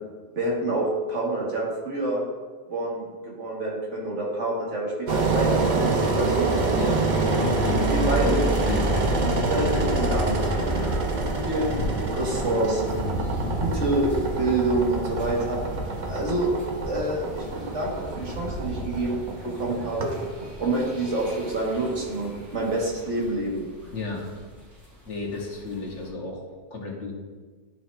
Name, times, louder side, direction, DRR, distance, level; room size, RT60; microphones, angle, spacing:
voice 1, 0.4-2.2 2.7-6.5 7.8-8.4 9.2-10.6 11.4-11.8 12.1-15.6 16.1-16.5 16.8-19.2 19.4-20.1 20.6-23.7, right 2 dB, 85° right, -3 dB, 1.9 m, -27 dB
Engine, 5.1-22.0, right 3 dB, 45° right, 0.8 m, -26 dB
sound 1, 7.1-26.1, equal, 70° right, 2.6 m, -37 dB
voice 2, 7.4-9.0 9.5-9.9 10.7-11.0 13.4-13.8 23.9-24.3 25.1-27.1, left 3 dB, 80° left, -1 dB, 1.5 m, -34 dB
11.5 x 4.3 x 2.5 m, 1.4 s
omnidirectional pair, 1.2 m